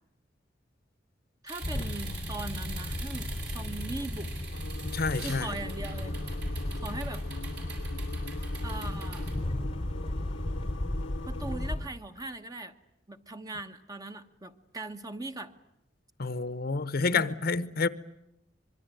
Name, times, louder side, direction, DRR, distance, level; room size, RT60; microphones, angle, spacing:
voice 1, 1.4-4.3 5.2-6.2 6.8-7.2 8.6-9.3 11.2-12.7 13.1-15.5 17.1-17.3, right 2 dB, 20° right, 1.2 m, -40 dB
sound 1, 1.5-9.3, right 5 dB, 60° right, 7.8 m, -45 dB
sound 2, 1.6-11.9, left 1 dB, 30° left, 0.9 m, -34 dB
sound 3, 4.5-11.8, left 3 dB, 85° left, 1.0 m, -45 dB
voice 2, 4.9-5.5 16.2-17.9, left 4 dB, 55° left, 0.9 m, -28 dB
24.5 x 23.0 x 9.2 m
head